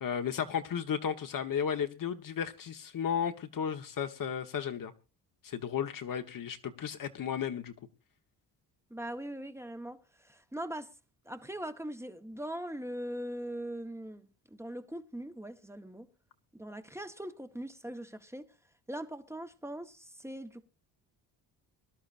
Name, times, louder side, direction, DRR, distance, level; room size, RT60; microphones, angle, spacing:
voice 1, 0.0-4.9 5.4-7.7, left 8 dB, 50° left, 1.3 m, -34 dB
voice 2, 8.9-10.0 10.3-10.9 11.3-14.3 14.6-16.1 16.5-18.4 18.9-20.6, right 1 dB, 5° right, 1.1 m, -41 dB
23.0 x 11.5 x 2.6 m
cardioid pair, 100°, 41 cm